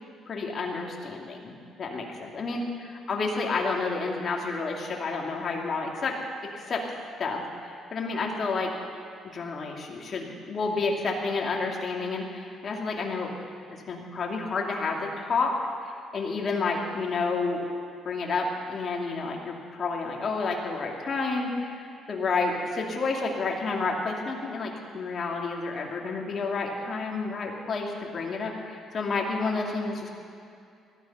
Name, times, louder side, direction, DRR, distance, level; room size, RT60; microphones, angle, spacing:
voice 1, 0.3-6.2 6.5-6.9 7.2-8.7 9.2-13.3 13.7-15.6 15.8-17.6 18.0-30.1, left 4 dB, 40° left, 0 dB, 2.7 m, -30 dB
18.5 x 13.0 x 5.7 m, 2.5 s
cardioid pair, 115°, 0 cm